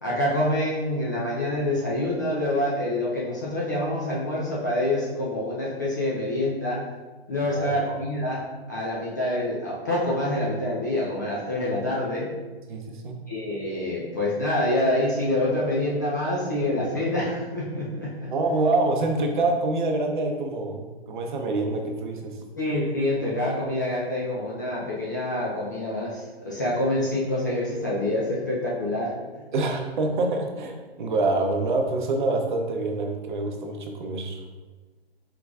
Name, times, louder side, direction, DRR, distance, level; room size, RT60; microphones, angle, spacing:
voice 1, 0.0-6.8 7.3-12.3 13.3-18.3 22.6-29.1, left 1 dB, 20° left, -6 dB, 0.3 m, -26 dB
voice 2, 7.4-7.7 12.7-13.2 18.3-22.3 29.5-34.4, right 2 dB, 50° right, 3 dB, 0.7 m, -26 dB
4.7 x 3.8 x 2.3 m, 1.3 s
figure-of-eight pair, 135°, 32 cm